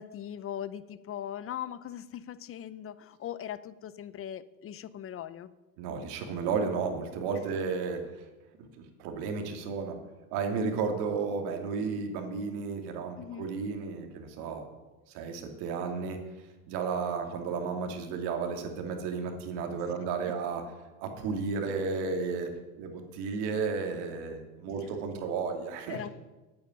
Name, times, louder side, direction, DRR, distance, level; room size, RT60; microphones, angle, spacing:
voice 1, 0.0-5.5 13.2-13.5 24.7-24.8 25.9-26.1, left 10 dB, 35° left, 16 dB, 0.6 m, -40 dB
voice 2, 5.8-8.3 8.8-10.0 10.3-14.7 15.1-20.7 21.0-26.0, right 5 dB, 70° right, 4 dB, 2.7 m, -33 dB
9.1 x 8.8 x 9.0 m, 1.1 s
supercardioid pair, 115°, 42 cm